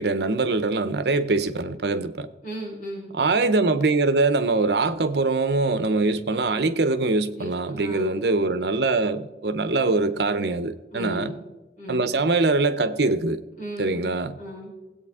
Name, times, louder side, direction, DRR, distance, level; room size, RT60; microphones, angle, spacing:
voice 1, 0.0-2.3 3.1-11.3 11.9-13.4 13.8-14.4, right 3 dB, 65° right, 0.7 m, -23 dB
voice 2, 2.4-3.1 7.4-8.2 10.9-11.4 11.8-12.2 13.6-14.1 14.4-14.7, equal, 45° left, 4.6 m, -35 dB
17.5 x 8.5 x 3.6 m
head